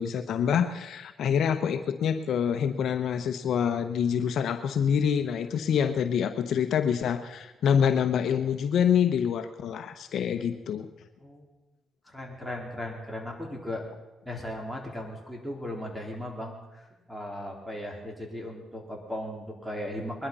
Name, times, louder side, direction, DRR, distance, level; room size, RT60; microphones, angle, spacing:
voice 1, 0.0-10.9, left 8 dB, 70° left, 8 dB, 1.0 m, -26 dB
voice 2, 12.1-13.8 14.2-20.3, left 1 dB, 5° right, 0 dB, 4.2 m, -37 dB
21.5 x 11.5 x 5.6 m, 1.1 s
cardioid pair, 90°, 0 cm